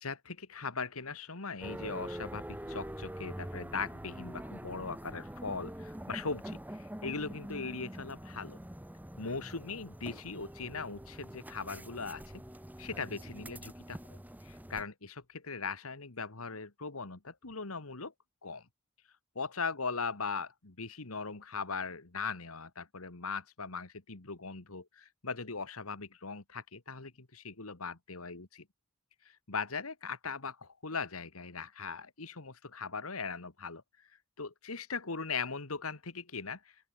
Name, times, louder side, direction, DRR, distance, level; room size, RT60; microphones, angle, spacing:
voice 1, 0.0-8.6 9.2-12.4 12.8-18.1 18.4-18.6 19.4-28.7 29.3-33.8 34.4-36.9, left 4 dB, 85° left, 2.0 m, -39 dB
sound 1, 1.6-14.8, equal, 10° right, 1.6 m, -45 dB
open air
head